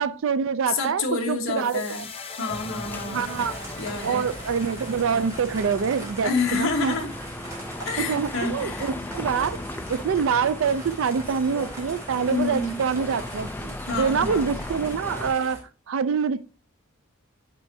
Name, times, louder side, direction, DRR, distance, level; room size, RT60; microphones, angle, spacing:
voice 1, 0.0-2.0 3.1-3.6 4.0-7.0 8.0-9.6 9.9-15.6 15.9-16.4, right 6 dB, 60° right, 0.4 m, -25 dB
voice 2, 0.7-3.3 3.8-4.3 6.2-7.1 7.8-8.9 12.3-12.8 13.9-14.5, left 4 dB, 60° left, 1.2 m, -28 dB
sound 1, 1.6-7.9, left 4 dB, 25° left, 0.8 m, -42 dB
sound 2, 2.5-15.4, left 1 dB, 10° left, 0.3 m, -37 dB
sound 3, 3.1-15.6, right 1 dB, 15° right, 2.2 m, -42 dB
8.9 x 4.5 x 2.7 m
head